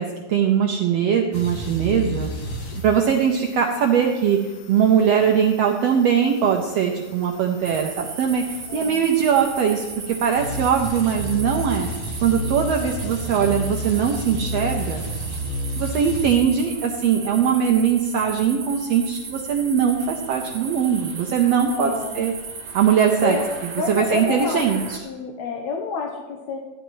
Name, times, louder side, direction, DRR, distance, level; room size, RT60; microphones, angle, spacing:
voice 1, 0.0-2.3 2.7-4.4 4.7-11.9 12.2-15.0 15.8-22.3 22.7-23.4 23.9-25.0, right 7 dB, 80° right, 2 dB, 1.5 m, -21 dB
sound 1, 1.3-16.4, left 1 dB, 85° left, 0.7 m, -33 dB
sound 2, 7.6-25.0, right 5 dB, 55° right, 2.1 m, -36 dB
voice 2, 8.7-9.0 12.7-13.1 21.7-22.3 23.2-23.5 23.8-24.7 25.0-26.6, left 5 dB, 70° left, 1 dB, 1.9 m, -29 dB
14.5 x 10.5 x 3.1 m, 1.2 s
omnidirectional pair, 3.7 m